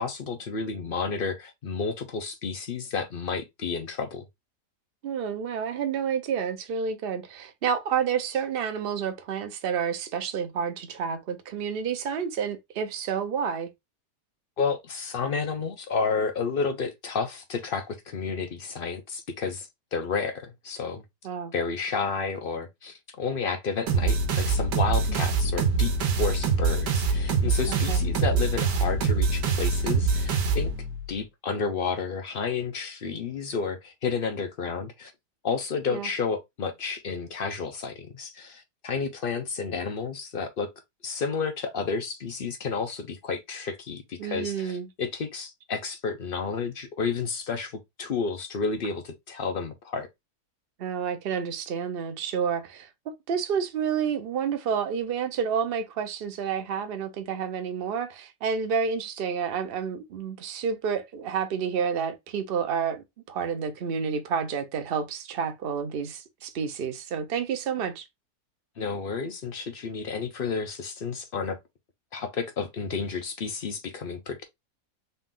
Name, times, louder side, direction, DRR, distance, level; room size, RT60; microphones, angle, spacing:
voice 1, 0.0-4.3 14.6-21.0 21.5-25.9 26.2-30.7 31.1-35.1 35.4-40.7 41.0-50.1 68.8-71.6 72.1-74.4, left 5 dB, 65° left, 0.5 m, -31 dB
voice 2, 5.0-13.7 21.2-21.5 27.7-28.0 35.9-36.1 44.2-44.9 50.8-52.9 53.3-68.1, right 7 dB, 50° right, 0.7 m, -29 dB
sound 1, 23.9-31.0, right 4 dB, 90° right, 1.6 m, -24 dB
4.1 x 2.4 x 3.7 m
omnidirectional pair, 1.7 m